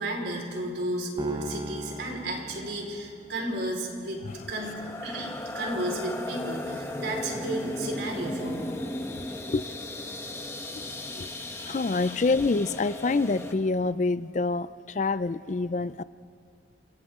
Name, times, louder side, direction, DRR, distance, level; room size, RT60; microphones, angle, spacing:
voice 1, 0.0-8.8, right 1 dB, 85° right, 0 dB, 4.6 m, -33 dB
sound 1, 1.2-3.6, right 1 dB, 25° right, 0.7 m, -39 dB
sound 2, 4.3-13.5, left 1 dB, 15° left, 1.3 m, -36 dB
voice 2, 9.2-9.7 10.8-10.9 11.1-11.3 11.6-16.0, left 3 dB, 40° left, 16 dB, 0.4 m, -27 dB
28.5 x 25.0 x 3.7 m, 2.3 s
head